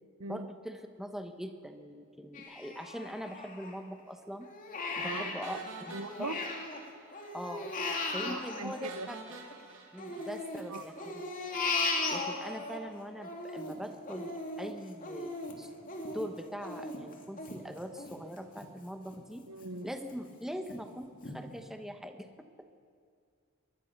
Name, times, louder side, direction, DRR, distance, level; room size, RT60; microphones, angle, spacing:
voice 1, 0.3-4.5 5.0-5.6 5.9-6.3 7.3-7.7 8.1-9.2 9.9-11.2 12.1-15.7 16.1-19.4 19.8-22.7, equal, ahead, 6 dB, 1.1 m, -42 dB
Crying sobbing, 2.3-4.0 4.4-6.8 7.1-9.5 10.0-12.8 13.2-18.7 19.1-19.2 19.6-20.2 20.7-20.8 21.2-21.4, left 3 dB, 40° left, 2.8 m, -37 dB
sound 1, 5.4-7.3 7.6-7.7 8.1-8.2 8.8-11.1, right 4 dB, 60° right, 3.1 m, -49 dB
voice 2, 5.9-6.4 8.2-9.1 10.7-10.8 19.5-19.9, right 2 dB, 75° right, 11 dB, 1.0 m, -40 dB
22.0 x 21.0 x 6.7 m, 2.3 s
head